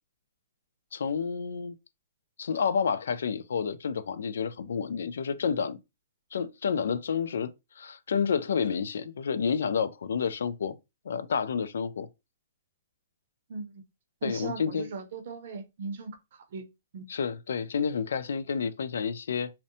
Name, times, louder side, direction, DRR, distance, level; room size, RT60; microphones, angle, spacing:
voice 1, 0.9-1.8 2.4-5.8 6.3-10.8 11.1-12.1 14.2-14.9 17.1-19.5, left 6 dB, 80° left, 0.3 m, -30 dB
voice 2, 14.2-16.1 16.5-16.6 16.9-17.0, right 4 dB, 55° right, 0.6 m, -37 dB
2.6 x 2.1 x 2.6 m
hypercardioid pair, 155°, 0 cm